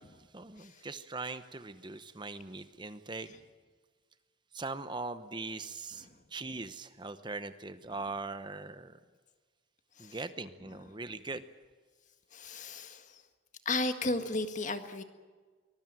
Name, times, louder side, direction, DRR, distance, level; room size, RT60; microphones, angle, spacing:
voice 1, 0.3-3.3 4.5-9.0 10.0-11.4, right 3 dB, 25° right, 12 dB, 0.9 m, -41 dB
voice 2, 12.3-13.2 13.7-15.0, left 2 dB, 40° left, 8 dB, 1.8 m, -34 dB
24.0 x 20.0 x 9.0 m, 1.4 s
head